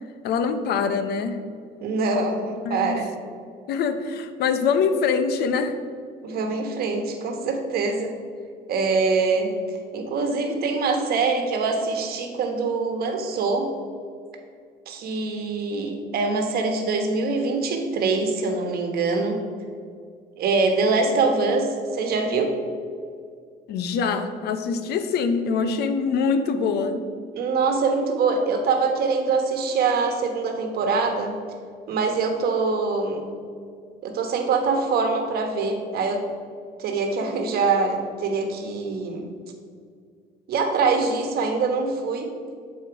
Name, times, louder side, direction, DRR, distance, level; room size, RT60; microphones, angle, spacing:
voice 1, 0.2-1.4 2.7-3.0 3.7-5.8 23.7-27.0, left 5 dB, 75° left, 9 dB, 0.7 m, -24 dB
voice 2, 1.8-3.1 6.2-8.1 8.7-9.5 9.9-13.7 14.9-19.4 20.4-22.5 27.3-31.3 31.9-33.3 34.0-36.2 36.8-39.3 40.5-42.3, right 4 dB, 65° right, 4 dB, 1.2 m, -24 dB
7.6 x 4.4 x 4.6 m, 2.2 s
cardioid pair, 110°, 17 cm